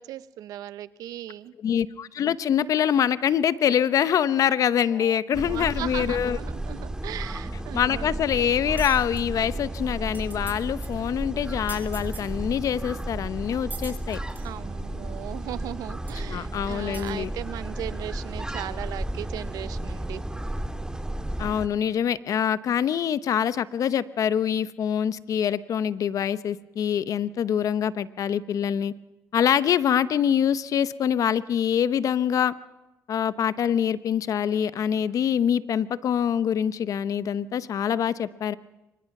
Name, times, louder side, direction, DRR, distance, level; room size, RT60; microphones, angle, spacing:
voice 1, 0.0-1.5 4.9-8.2 11.0-11.2 14.4-20.2, right 12 dB, 80° right, 16 dB, 0.7 m, -38 dB
voice 2, 1.6-6.4 7.7-14.2 16.3-17.3 21.4-28.9 29.3-32.5 33.1-38.5, left 9 dB, 65° left, 16 dB, 0.8 m, -25 dB
sound 1, 5.3-21.7, right 1 dB, 10° right, 1.7 m, -33 dB
sound 2, 8.8-9.2 9.8-9.9 10.0-10.6 10.8-11.0 11.7-12.3 13.0-13.1 13.7-14.5 15.4-15.5 16.1-16.2 16.9-17.1, right 3 dB, 30° right, 5.6 m, -42 dB
24.0 x 20.5 x 6.0 m, 1.0 s
supercardioid pair, 65°, 6 cm